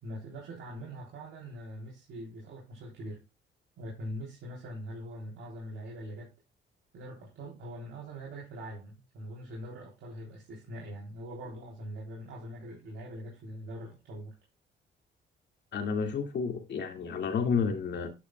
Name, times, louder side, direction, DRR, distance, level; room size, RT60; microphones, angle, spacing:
voice 1, 0.0-3.2 3.8-6.3 6.9-14.3, equal, 80° right, 3.5 m, -42 dB
voice 2, 15.7-18.1, left 5 dB, 60° left, 2.3 m, -30 dB
9.8 x 6.3 x 2.3 m
cardioid pair, 90°, 20 cm